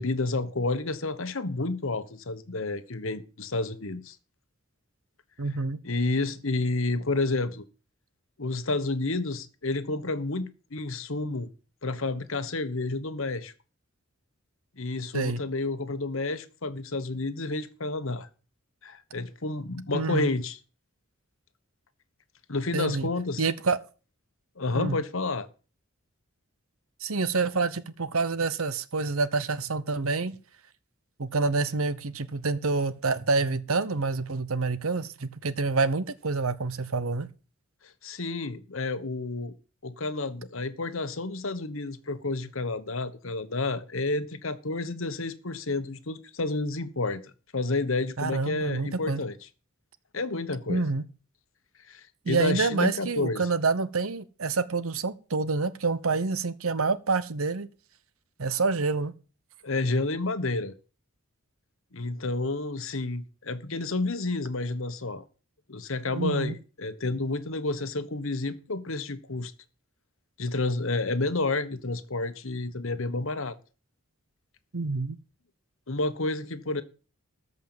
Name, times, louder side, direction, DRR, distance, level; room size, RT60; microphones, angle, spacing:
voice 1, 0.0-4.2 5.8-7.6 8.4-11.5 11.8-13.5 14.8-18.3 18.8-20.6 22.5-23.4 24.6-25.5 38.0-39.5 39.8-49.4 50.1-50.8 51.9-53.5 59.6-60.7 61.9-65.2 65.7-69.5 70.4-73.6 75.9-76.8, left 2 dB, 70° left, 1.2 m, -30 dB
voice 2, 5.4-5.8 15.1-15.4 19.9-20.3 22.7-23.1 23.4-23.8 24.7-25.0 27.0-30.4 31.2-37.3 48.2-49.2 50.7-51.0 52.2-57.7 58.4-59.1 66.1-66.5 74.7-75.2, right 4 dB, 80° right, 1.0 m, -27 dB
14.0 x 5.6 x 7.3 m
head